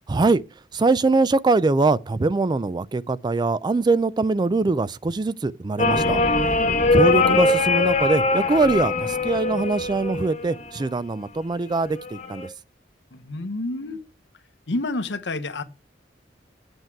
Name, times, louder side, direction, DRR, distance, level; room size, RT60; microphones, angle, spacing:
voice 1, 0.1-0.4 0.7-6.5 6.9-12.5, right 3 dB, 25° right, 0.3 m, -22 dB
sound 1, 5.8-10.8 12.0-12.5, left 3 dB, 40° left, 1.1 m, -21 dB
voice 2, 13.1-14.0 14.7-15.6, left 2 dB, 80° left, 0.9 m, -29 dB
7.9 x 7.5 x 4.6 m
head